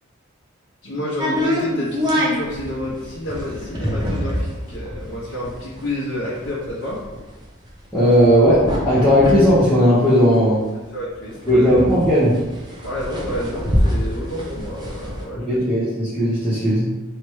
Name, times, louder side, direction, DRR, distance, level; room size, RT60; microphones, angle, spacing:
voice 1, 0.8-7.0 10.9-11.6 12.8-15.6, left 1 dB, 75° left, -11 dB, 1.1 m, -29 dB
sound 1, 1.2-10.7 11.0-11.1 11.3-15.2, equal, 20° right, 0.7 m, -25 dB
voice 2, 7.9-10.6 11.5-12.4 15.4-16.9, equal, 5° left, -14 dB, 1.0 m, -16 dB
3.3 x 2.9 x 4.4 m, 1.1 s
head